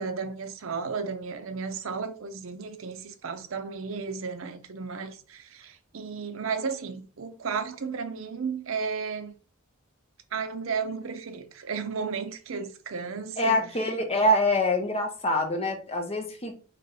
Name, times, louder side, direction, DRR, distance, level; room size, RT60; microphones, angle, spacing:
voice 1, 0.0-9.4 10.3-13.6, right 5 dB, 70° right, 0.6 m, -34 dB
voice 2, 13.4-16.5, left 1 dB, 30° left, 0.9 m, -25 dB
4.1 x 3.1 x 4.0 m
head